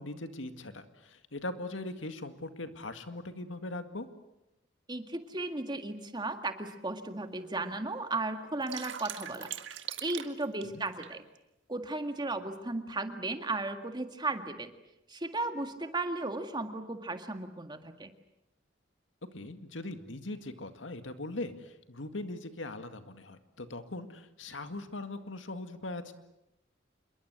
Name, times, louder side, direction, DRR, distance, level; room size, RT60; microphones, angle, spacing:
voice 1, 0.0-4.1 10.6-10.8 19.3-26.1, left 2 dB, 90° left, 8 dB, 2.0 m, -40 dB
voice 2, 4.9-9.5 10.0-11.2 11.7-14.7 15.1-18.1, right 2 dB, 25° right, 7 dB, 1.9 m, -35 dB
sound 1, 5.4-5.5 6.2-6.3 6.7-6.8 7.0-7.6 8.0-11.2, right 9 dB, 90° right, 1.7 m, -41 dB
27.0 x 22.5 x 8.1 m, 0.89 s
head